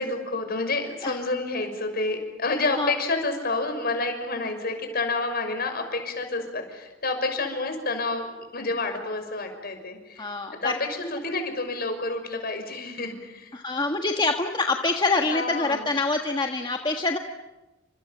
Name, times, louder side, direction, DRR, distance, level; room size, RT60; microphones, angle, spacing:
voice 1, 0.0-8.3 8.5-10.3 10.6-13.6 15.3-15.9, left 3 dB, 50° left, 6 dB, 6.2 m, -29 dB
voice 2, 10.2-10.7 13.5-17.2, left 3 dB, 25° left, 3 dB, 1.6 m, -25 dB
30.0 x 27.0 x 7.4 m, 1.0 s
head